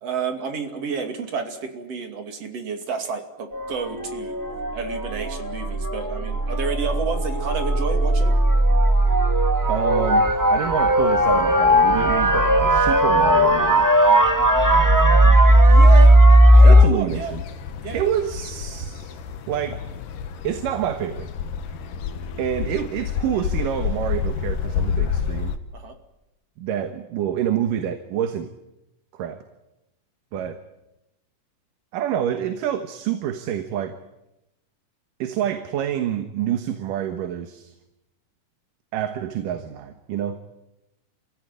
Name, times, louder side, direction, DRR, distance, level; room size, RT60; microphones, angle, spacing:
voice 1, 0.0-4.4 4.7-8.4 15.7-16.2 16.5-17.3 17.8-18.1 25.7-26.0, right 5 dB, 50° right, 5 dB, 3.5 m, -30 dB
sound 1, 3.5-16.8, right 1 dB, 15° right, 0.6 m, -16 dB
voice 2, 9.7-13.9 16.6-17.4 17.9-19.2 19.5-19.8 20.4-21.3 22.4-25.5 26.6-28.5 29.1-29.4 30.3-30.6 31.9-34.0 35.2-37.7 38.9-40.4, right 10 dB, 80° right, 8 dB, 2.9 m, -27 dB
sound 2, 17.1-25.6, left 7 dB, 80° left, 3.0 m, -29 dB
28.0 x 16.5 x 9.8 m, 0.93 s
omnidirectional pair, 3.8 m